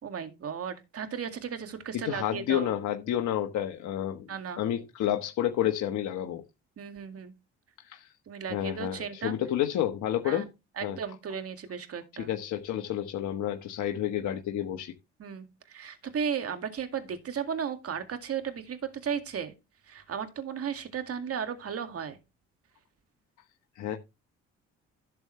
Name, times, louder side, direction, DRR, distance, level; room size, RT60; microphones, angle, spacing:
voice 1, 0.0-2.7 4.3-4.6 6.8-7.3 8.3-9.3 10.3-10.5 10.8-12.3 15.2-19.5 19.9-22.2, right 7 dB, 50° right, 2.2 m, -35 dB
voice 2, 1.9-4.3 4.6-6.4 7.8-8.1 8.5-10.5 10.8-11.0 12.2-14.9 23.7-24.0, left 11 dB, 65° left, 1.3 m, -30 dB
12.0 x 6.9 x 3.2 m
supercardioid pair, 65°, 31 cm